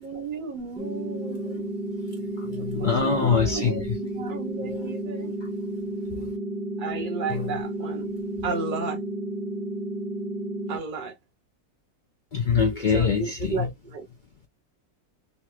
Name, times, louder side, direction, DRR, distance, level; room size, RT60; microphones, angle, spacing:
voice 1, 0.0-1.7 2.6-3.8 4.2-5.3 6.8-9.0 10.7-11.2 12.9-14.1, right 4 dB, 80° right, 0.4 m, -34 dB
sound 1, 0.8-10.8, right 1 dB, ahead, 0.5 m, -32 dB
voice 2, 2.1-3.8 5.4-5.5 6.2-6.3 7.3-7.5 12.3-13.7, left 6 dB, 75° left, 0.4 m, -24 dB
3.0 x 2.9 x 2.3 m
omnidirectional pair, 1.6 m